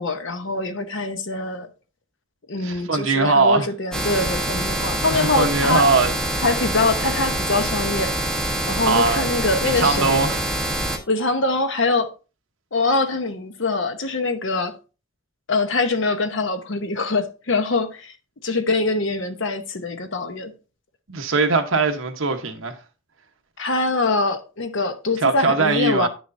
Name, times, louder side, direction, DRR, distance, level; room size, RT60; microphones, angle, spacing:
voice 1, 0.0-1.7 2.5-5.9 6.4-8.1 8.7-10.2 11.1-12.1 12.7-14.7 15.5-18.1 18.4-20.5 23.6-26.1, left 3 dB, 60° left, 0.9 m, -23 dB
voice 2, 2.6-3.7 5.1-6.1 8.9-9.3 9.6-10.4 21.1-22.8 25.2-26.1, right 3 dB, 70° right, 1.0 m, -20 dB
sound 1, 3.9-11.0, right 1 dB, 5° left, 1.1 m, -25 dB
9.7 x 6.4 x 2.6 m
head